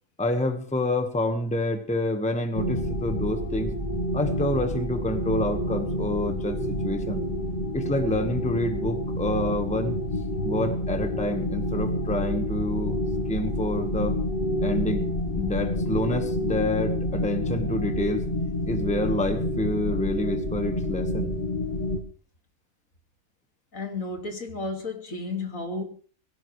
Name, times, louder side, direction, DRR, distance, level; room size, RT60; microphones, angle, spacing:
voice 1, 0.2-3.7 4.1-7.2 7.7-10.0 10.4-13.0 13.3-14.2 14.6-18.2 18.6-21.3, left 1 dB, 5° left, 1.4 m, -28 dB
sound 1, 2.5-22.0, left 1 dB, 35° left, 1.4 m, -28 dB
voice 2, 23.7-25.8, left 3 dB, 60° left, 2.7 m, -32 dB
22.0 x 16.5 x 3.3 m
omnidirectional pair, 1.6 m